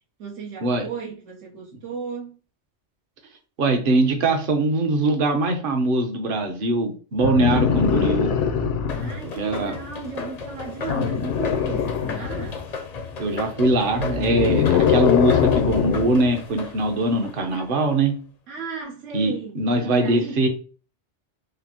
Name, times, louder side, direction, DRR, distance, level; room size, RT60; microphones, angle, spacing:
voice 1, 0.2-2.4 8.9-12.7 18.5-20.5, right 6 dB, 85° right, 1.3 m, -35 dB
voice 2, 3.6-8.3 9.3-9.7 13.2-18.1 19.1-20.5, right 2 dB, 55° right, 0.9 m, -22 dB
sound 1, 7.2-9.2 10.9-12.6 13.9-16.2 17.5-17.6, left 7 dB, 85° left, 1.0 m, -22 dB
sound 2, 8.9-18.0, left 5 dB, 50° left, 0.5 m, -35 dB
5.0 x 2.0 x 2.8 m
omnidirectional pair, 1.2 m